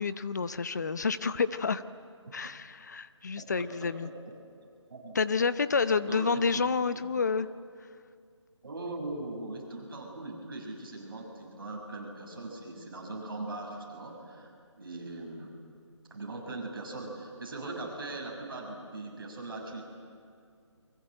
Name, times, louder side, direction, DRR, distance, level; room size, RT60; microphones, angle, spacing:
voice 1, 0.0-1.8 2.3-4.1 5.1-7.5, left 5 dB, 35° left, 14 dB, 0.8 m, -29 dB
voice 2, 3.4-4.1 4.6-5.1 6.1-6.6 8.6-14.5 14.8-15.5 16.1-19.8, right 2 dB, 45° right, 0 dB, 6.5 m, -40 dB
29.0 x 23.5 x 7.7 m, 2.3 s
hypercardioid pair, 175°, 16 cm